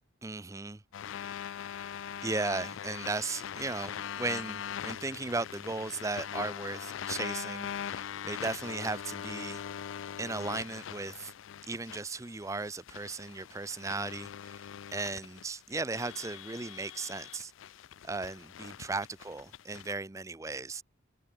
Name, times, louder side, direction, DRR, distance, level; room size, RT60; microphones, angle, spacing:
voice 1, 0.2-0.8 2.2-9.6 10.2-11.3 11.7-14.6 14.9-17.5 18.0-20.8, right 3 dB, 15° right, 0.5 m, -36 dB
sound 1, 0.9-19.9, left 9 dB, 80° left, 0.4 m, -42 dB
head